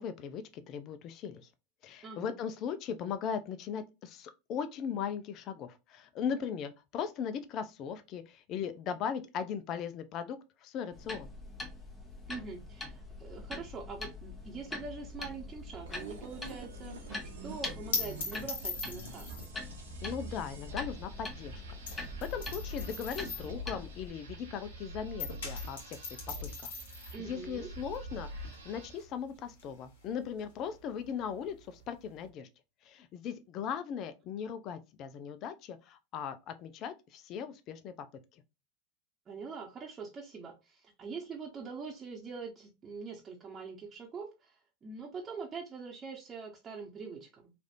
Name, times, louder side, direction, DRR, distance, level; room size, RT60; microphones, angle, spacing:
voice 1, 0.0-1.5 1.8-11.3 20.0-21.6 21.9-26.0 26.4-26.7 27.0-32.5 32.8-37.9 38.3-38.4, left 7 dB, 45° left, 0.5 m, -38 dB
voice 2, 2.0-2.4 12.3-17.1 17.4-19.5 27.1-27.7 39.3-47.5, right 4 dB, 30° right, 1.0 m, -44 dB
sound 1, 10.9-24.1, left 3 dB, 20° left, 1.0 m, -44 dB
sound 2, 15.9-24.8 25.0-32.3, left 4 dB, 75° left, 1.4 m, -42 dB
sound 3, 15.9-29.1, right 1 dB, 85° right, 1.0 m, -45 dB
3.2 x 2.5 x 2.6 m
hypercardioid pair, 95°, 0 cm